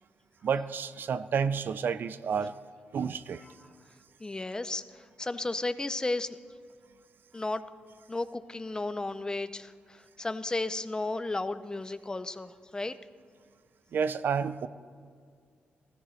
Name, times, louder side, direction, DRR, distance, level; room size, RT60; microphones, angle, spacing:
voice 1, 0.4-2.5 2.9-3.4 13.9-14.7, right 6 dB, 65° right, 14 dB, 0.4 m, -30 dB
voice 2, 4.2-6.4 7.3-7.6 8.1-12.9, left 2 dB, 20° left, 13 dB, 0.5 m, -34 dB
15.5 x 13.5 x 3.2 m, 2.1 s
cardioid pair, 85°, 4 cm